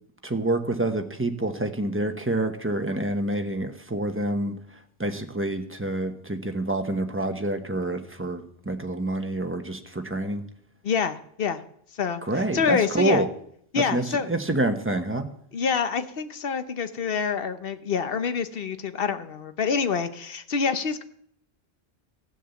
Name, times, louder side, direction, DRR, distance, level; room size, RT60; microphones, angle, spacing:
voice 1, 0.2-10.4 12.2-13.3 13.9-15.3, right 2 dB, 15° right, 6 dB, 1.0 m, -27 dB
voice 2, 10.8-11.6 11.9-12.2 12.5-13.2 13.7-14.3 15.5-21.0, left 5 dB, 65° left, 10 dB, 1.1 m, -26 dB
15.5 x 7.3 x 7.0 m, 0.67 s
omnidirectional pair, 1.1 m